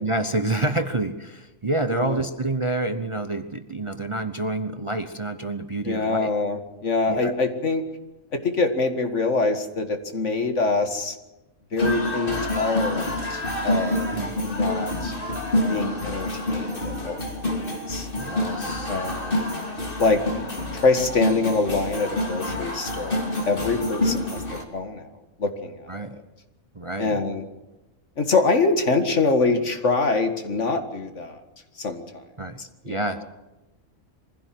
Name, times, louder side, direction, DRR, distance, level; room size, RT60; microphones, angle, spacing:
voice 1, 0.0-6.3 7.1-7.3 14.1-14.3 18.2-18.9 25.9-26.2 26.7-27.2 32.4-32.6 32.8-33.2, right 2 dB, 25° right, 8 dB, 0.9 m, -28 dB
voice 2, 1.9-2.2 5.9-7.8 8.3-11.2 11.7-14.1 14.4-15.1 15.7-17.5 17.9-18.1 18.9-19.5 20.0-20.2 20.7-24.4 24.7-25.1 25.4-25.9 27.0-27.4 28.2-31.4 31.8-32.2 32.6-33.2, left 3 dB, 60° left, 7 dB, 2.2 m, -25 dB
sound 1, 11.8-24.6, left 1 dB, 40° left, 3.0 m, -27 dB
23.5 x 16.0 x 7.7 m, 1.0 s
omnidirectional pair, 1.4 m